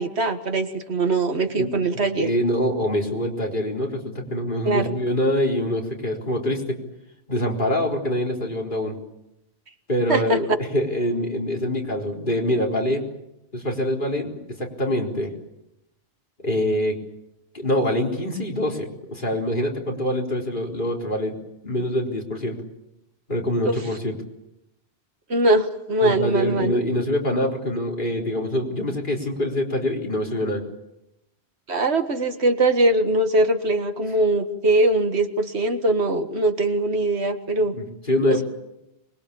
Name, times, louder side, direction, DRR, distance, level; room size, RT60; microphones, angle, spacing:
voice 1, 0.0-2.3 4.7-5.0 10.1-10.4 23.7-23.8 25.3-26.7 31.7-37.7 38.3-38.4, right 2 dB, 80° right, 7 dB, 2.0 m, -21 dB
voice 2, 2.2-6.7 7.3-9.0 9.9-13.0 13.5-15.3 16.4-17.0 17.5-21.4 21.6-22.6 23.3-24.1 26.0-30.6 37.7-38.4, left 1 dB, 50° left, 0 dB, 4.3 m, -25 dB
25.0 x 21.5 x 8.6 m, 0.87 s
omnidirectional pair, 1.1 m